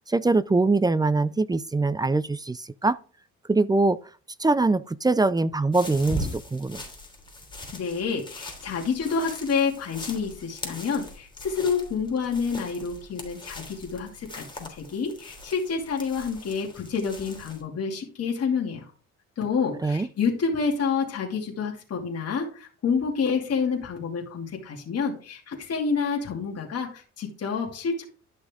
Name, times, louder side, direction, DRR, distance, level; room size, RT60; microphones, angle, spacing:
voice 1, 0.1-3.0 3.5-4.0 4.4-6.8 19.8-20.1, right 3 dB, 15° right, 0.4 m, -23 dB
sound 1, 5.7-17.6, left 1 dB, 15° left, 3.0 m, -40 dB
voice 2, 7.7-18.9 19.4-28.0, left 5 dB, 55° left, 2.7 m, -28 dB
11.5 x 6.2 x 3.7 m
cardioid pair, 90°, 30 cm